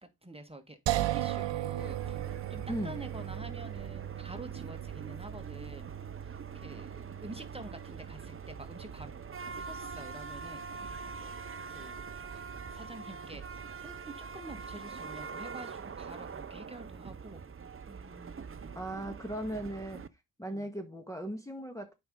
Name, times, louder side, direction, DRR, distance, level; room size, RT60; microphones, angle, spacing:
voice 1, 0.0-2.2 2.5-5.9 6.2-9.1 9.6-11.4 11.7-12.4 12.7-17.4 17.9-18.9 20.4-20.7, right 2 dB, 10° right, 1.8 m, -48 dB
sound 1, 0.9-13.9, right 13 dB, 65° right, 0.7 m, -39 dB
sound 2, 1.8-20.1, right 5 dB, 30° right, 0.8 m, -44 dB
voice 2, 2.7-3.0 18.7-20.1 20.4-21.9, right 1 dB, 5° left, 1.6 m, -37 dB
7.8 x 5.6 x 3.8 m
supercardioid pair, 50°, 46 cm